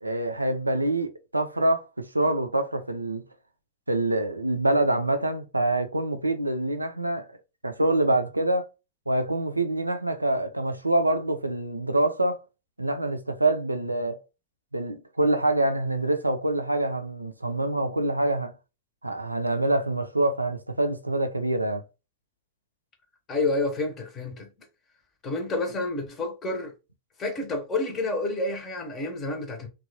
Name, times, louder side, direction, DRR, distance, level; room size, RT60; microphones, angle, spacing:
voice 1, 0.0-3.2 3.9-7.3 7.6-8.7 9.1-12.4 12.8-14.2 14.7-18.5 19.0-21.8, right 1 dB, 85° right, 0.3 m, -25 dB
voice 2, 23.3-24.5 25.2-26.7 27.2-29.7, left 2 dB, 25° left, 0.7 m, -29 dB
3.0 x 2.2 x 2.6 m
figure-of-eight pair, 90°, 0 cm